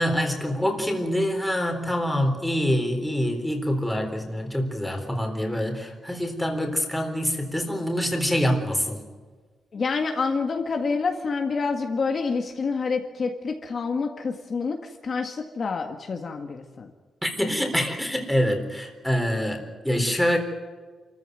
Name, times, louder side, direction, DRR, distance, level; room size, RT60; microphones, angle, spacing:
voice 1, 0.0-9.0 17.2-20.4, equal, ahead, 3 dB, 3.8 m, -25 dB
voice 2, 9.7-16.9, left 4 dB, 40° left, 3 dB, 1.8 m, -27 dB
29.0 x 14.5 x 9.3 m, 1.4 s
wide cardioid pair, 160°, 0 cm